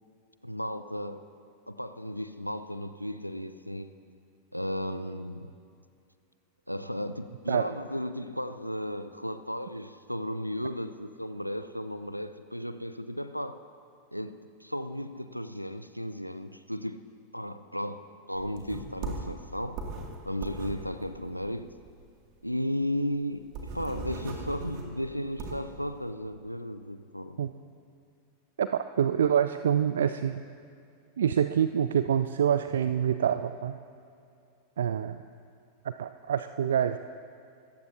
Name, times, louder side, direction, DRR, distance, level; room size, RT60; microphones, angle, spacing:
voice 1, 0.4-1.2 1.7-3.9 4.5-5.5 6.7-13.6 14.1-17.1 17.3-19.8 20.3-21.8 22.4-27.4, equal, 90° left, 11 dB, 0.4 m, -35 dB
sound 1, 18.3-22.1 22.4-22.5 22.8-22.9 23.2-25.7, right 3 dB, 40° right, 2.4 m, -39 dB
voice 2, 28.6-30.4 31.2-33.8 34.8-35.2 35.8-37.0, right 9 dB, 65° right, 11 dB, 0.4 m, -26 dB
26.5 x 14.5 x 2.8 m, 2.5 s
figure-of-eight pair, 90°, 0 cm